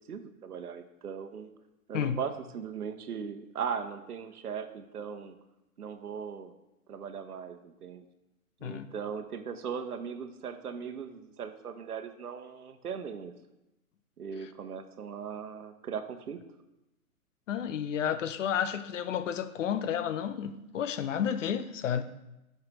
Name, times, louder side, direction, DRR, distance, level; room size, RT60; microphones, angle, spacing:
voice 1, 0.1-1.5 1.9-5.4 5.8-6.5 6.9-8.0 8.6-13.3 14.2-16.4, right 7 dB, 80° right, 1.0 m, -38 dB
voice 2, 17.5-22.0, left 8 dB, 55° left, 0.7 m, -31 dB
10.5 x 5.8 x 3.0 m
hypercardioid pair, 130°, 44 cm